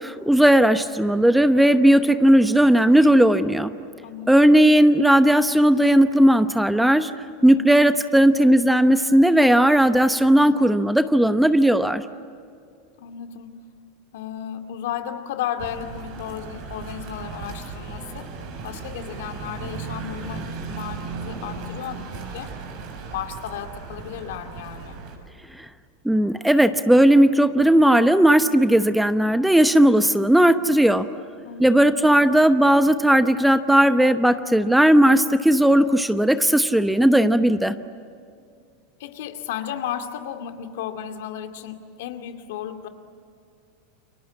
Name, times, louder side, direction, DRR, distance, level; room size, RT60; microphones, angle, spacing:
voice 1, 0.0-3.7 4.3-7.1 7.4-12.0 25.6-25.7 26.0-31.1 31.6-37.7, right 1 dB, 5° right, 11 dB, 1.0 m, -17 dB
voice 2, 4.0-4.5 7.4-7.7 10.4-10.6 13.0-13.6 14.1-18.3 18.6-22.5 23.1-25.0 30.5-30.8 31.4-31.9 34.4-34.8 39.0-42.9, left 10 dB, 70° left, 6 dB, 2.3 m, -34 dB
sound 1, 15.6-25.1, right 4 dB, 60° right, 6.8 m, -36 dB
29.5 x 23.5 x 8.6 m, 2.4 s
hypercardioid pair, 105°, 0 cm